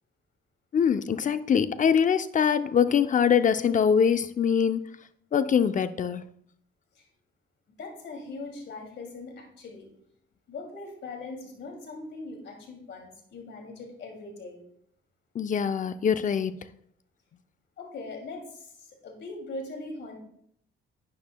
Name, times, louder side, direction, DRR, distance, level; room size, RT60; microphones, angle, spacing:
voice 1, 0.7-4.8 5.3-6.2 15.3-16.7, left 7 dB, 40° left, 0.6 m, -23 dB
voice 2, 7.8-9.9 10.5-14.6 17.8-20.2, left 3 dB, 65° left, 2.6 m, -40 dB
11.5 x 9.2 x 2.3 m
cardioid pair, 90°, 20 cm